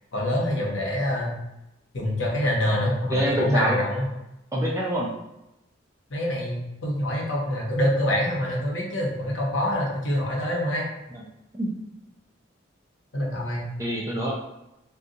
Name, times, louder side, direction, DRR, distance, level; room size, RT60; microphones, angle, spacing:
voice 1, 0.1-1.3 1.9-4.1 6.1-10.9 13.1-13.7, left 1 dB, 75° left, -2 dB, 0.9 m, -25 dB
voice 2, 3.1-3.8 4.5-5.1 11.1-11.2 11.5-11.7 13.8-14.3, equal, 15° right, -3 dB, 0.4 m, -26 dB
2.7 x 2.3 x 3.7 m, 0.90 s
head